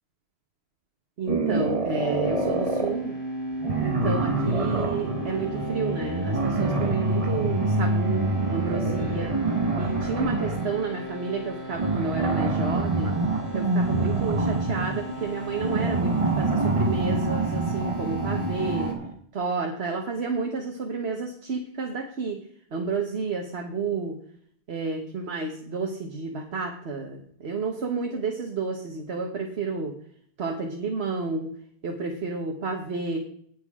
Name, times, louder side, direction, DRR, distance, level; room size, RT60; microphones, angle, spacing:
voice 1, 1.2-3.2 3.8-9.3 9.8-13.1 13.5-18.9 19.3-22.4 22.7-24.2 24.7-29.9 30.4-31.5 31.8-33.2, right 4 dB, 80° right, 2 dB, 1.5 m, -31 dB
sound 1, 1.3-3.0 3.6-10.8 11.7-19.1, right 2 dB, 35° right, 1.1 m, -26 dB
sound 2, 2.2-18.9, equal, 55° right, 1.9 m, -37 dB
18.0 x 6.3 x 3.7 m, 0.62 s
omnidirectional pair, 1.1 m